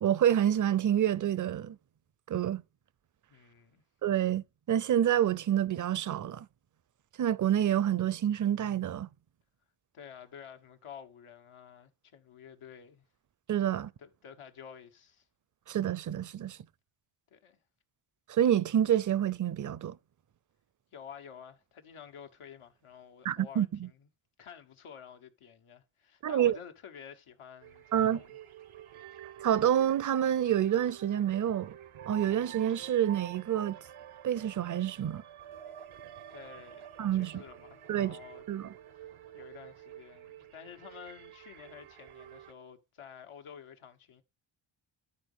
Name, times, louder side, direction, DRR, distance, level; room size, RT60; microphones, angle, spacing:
voice 1, 0.0-1.8 2.3-2.6 4.0-6.5 7.2-9.1 13.5-13.9 15.7-16.6 18.3-20.0 23.3-23.9 26.2-26.6 27.9-28.2 29.4-31.7 32.1-33.8 34.2-35.2 37.0-37.4 37.9-38.2 38.5-38.7, right 10 dB, 40° right, 0.5 m, -28 dB
voice 2, 3.3-3.8 9.9-13.0 14.0-15.3 17.3-17.6 20.9-24.1 24.4-28.4 28.9-29.2 36.3-38.5 38.9-44.2, left 8 dB, 90° left, 1.4 m, -50 dB
sound 1, 27.6-42.5, right 11 dB, 85° right, 1.0 m, -49 dB
11.0 x 4.1 x 5.5 m
cardioid pair, 90°, 48 cm